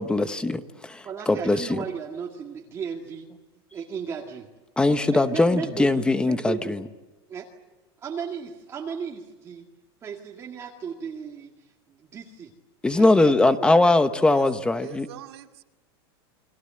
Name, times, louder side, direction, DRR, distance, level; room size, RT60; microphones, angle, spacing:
voice 1, 0.0-1.8 4.8-6.8 12.8-15.1, left 2 dB, 5° left, 10 dB, 1.0 m, -21 dB
voice 2, 1.0-3.3 3.7-4.5 4.8-6.7 7.3-7.5 8.0-9.7 10.0-11.7 12.0-12.5 13.0-13.5, right 6 dB, 20° right, -1 dB, 2.1 m, -35 dB
voice 3, 14.8-15.6, right 13 dB, 80° right, 5 dB, 2.2 m, -44 dB
29.0 x 23.0 x 7.8 m, 1.1 s
supercardioid pair, 160°, 13 cm